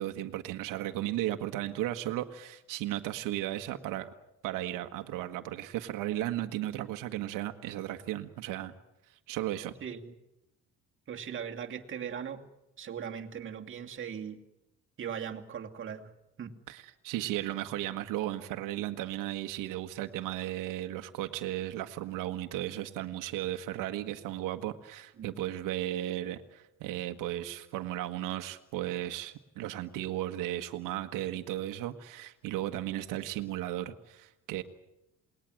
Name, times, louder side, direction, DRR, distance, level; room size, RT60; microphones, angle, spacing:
voice 1, 0.0-4.1 4.4-8.7 9.3-9.7 16.7-34.6, right 14 dB, 90° right, 6 dB, 1.6 m, -35 dB
voice 2, 9.8-10.1 11.1-12.4 12.8-14.4 15.0-16.1 16.4-16.5 25.2-25.3, right 8 dB, 40° right, 3 dB, 2.5 m, -39 dB
28.5 x 20.0 x 7.8 m, 0.92 s
cardioid pair, 130°, 31 cm